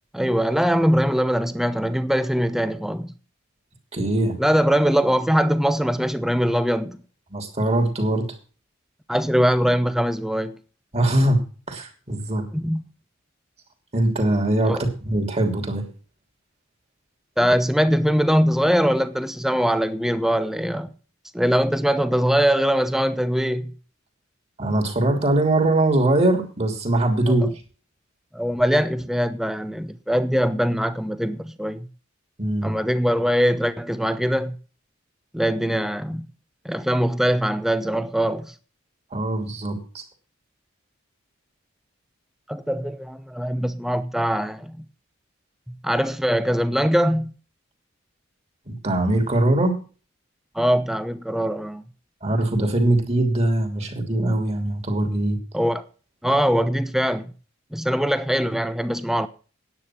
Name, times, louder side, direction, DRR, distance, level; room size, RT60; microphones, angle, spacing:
voice 1, 0.1-3.1 4.4-7.0 9.1-10.6 12.5-12.8 14.6-14.9 17.4-20.9 21.3-23.7 27.3-27.5 28.3-31.9 32.6-34.6 35.3-36.3 36.6-38.5 42.5-44.8 45.7-47.3 50.5-51.8 55.5-55.8 56.2-57.3 57.7-59.3, equal, ahead, 0.8 m, -22 dB
voice 2, 3.9-4.4 7.3-8.3 10.9-11.4 11.7-12.4 13.9-15.8 24.6-27.5 32.4-32.7 39.1-40.0 48.7-49.8 52.2-55.4, right 1 dB, 30° right, 3.0 m, -22 dB
10.0 x 9.3 x 5.9 m
head